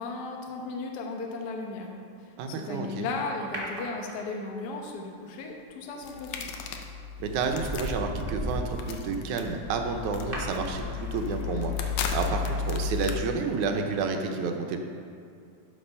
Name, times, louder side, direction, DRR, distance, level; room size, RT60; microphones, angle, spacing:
voice 1, 0.0-6.5, left 3 dB, 65° left, 1 dB, 1.0 m, -36 dB
voice 2, 2.4-3.1 7.2-14.8, right 4 dB, 85° right, 4 dB, 2.3 m, -30 dB
sound 1, 3.5-4.6 6.4-6.7 7.2-13.4 13.7-13.8, right 1 dB, 25° right, 1.3 m, -38 dB
sound 2, 6.0-13.2, left 6 dB, 85° left, 2.2 m, -34 dB
12.0 x 5.9 x 5.6 m, 2.4 s
omnidirectional pair, 3.3 m